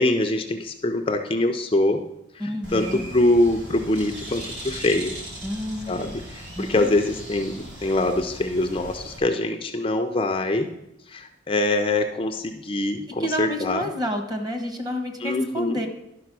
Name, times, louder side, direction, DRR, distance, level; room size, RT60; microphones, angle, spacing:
voice 1, 0.0-2.0 2.3-5.2 5.9-10.7 11.1-13.8 15.2-15.8, left 2 dB, 30° left, 5 dB, 0.5 m, -24 dB
voice 2, 2.4-3.1 5.4-6.2 6.6-6.9 13.1-15.9, equal, 20° right, 5 dB, 1.2 m, -30 dB
Bird, 2.6-9.2, right 1 dB, 65° right, 2.7 m, -39 dB
11.5 x 5.1 x 6.0 m, 0.84 s
head